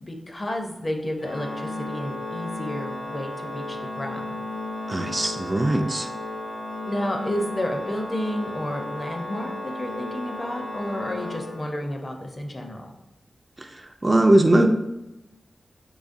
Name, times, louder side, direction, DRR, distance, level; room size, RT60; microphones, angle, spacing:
voice 1, 0.0-4.4 6.9-12.9, left 1 dB, 35° left, 3 dB, 0.6 m, -31 dB
Organ, 1.2-12.1, left 2 dB, 90° left, 0.5 m, -34 dB
voice 2, 4.9-6.1 13.6-14.7, right 1 dB, 30° right, 4 dB, 0.3 m, -20 dB
3.9 x 3.1 x 2.5 m, 0.95 s
wide cardioid pair, 70°, 0 cm